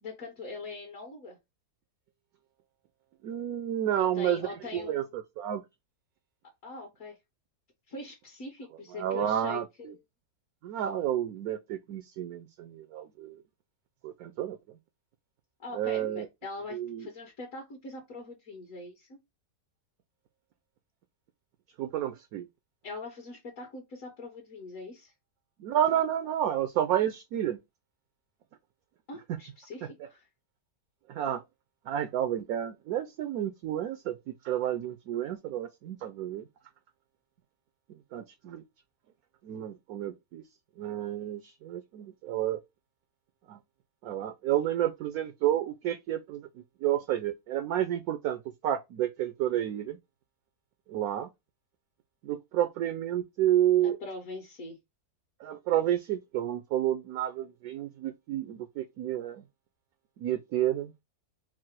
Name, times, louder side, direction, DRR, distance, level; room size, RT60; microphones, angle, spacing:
voice 1, 0.0-1.4 4.0-5.1 6.6-7.2 7.9-10.0 15.6-19.2 22.8-25.1 29.1-30.2 53.8-54.8, left 3 dB, 55° left, 1.3 m, -42 dB
voice 2, 3.2-5.6 8.9-9.9 10.6-13.4 14.0-14.8 15.7-16.3 16.7-17.1 21.8-22.5 25.6-27.6 29.8-29.9 31.1-31.4 31.8-36.5 37.9-38.6 39.4-40.4 40.8-42.6 43.5-43.6 44.0-50.0 50.9-51.3 52.2-54.0 55.4-59.4 60.2-60.9, right 11 dB, 70° right, 1.0 m, -30 dB
4.7 x 2.0 x 4.4 m
omnidirectional pair, 1.8 m